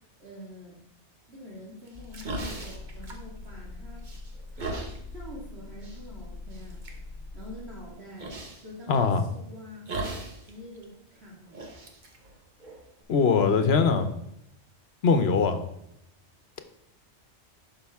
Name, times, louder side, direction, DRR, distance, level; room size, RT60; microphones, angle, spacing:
voice 1, 0.2-0.8 1.3-4.1 4.5-6.8 7.3-8.4 8.6-9.9 10.4-11.6, left 1 dB, 65° right, -4 dB, 2.2 m, -46 dB
sound 1, 1.9-7.9, left 3 dB, 30° left, 0.6 m, -43 dB
sound 2, 1.9-3.7 4.0-5.0 5.8-6.0 6.5-7.0 8.2-8.6 9.9-10.5 10.8-10.9 11.5-13.0, right 2 dB, 45° right, 1.2 m, -37 dB
voice 2, 8.9-9.2 13.1-14.1 15.0-15.6, left 5 dB, 65° left, 9 dB, 1.0 m, -22 dB
11.5 x 5.7 x 3.5 m, 0.78 s
omnidirectional pair, 1.2 m